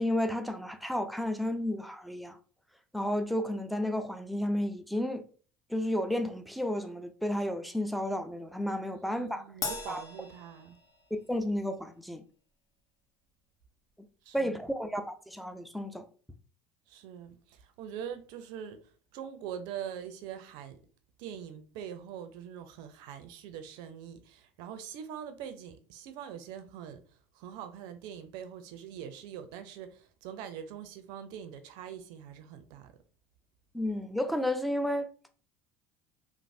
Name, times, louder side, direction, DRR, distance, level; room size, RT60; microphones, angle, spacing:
voice 1, 0.0-2.4 2.9-5.2 5.7-9.4 9.9-10.0 11.3-12.2 14.3-16.0 33.7-35.1, left 1 dB, ahead, 0.4 m, -32 dB
voice 2, 8.9-10.8 14.2-14.6 16.9-20.8 21.2-27.0 27.3-32.9, right 8 dB, 65° right, 0.5 m, -43 dB
Crash cymbal, 9.6-11.3, left 4 dB, 50° left, 0.7 m, -39 dB
3.1 x 2.0 x 2.6 m
hypercardioid pair, 70°, 8 cm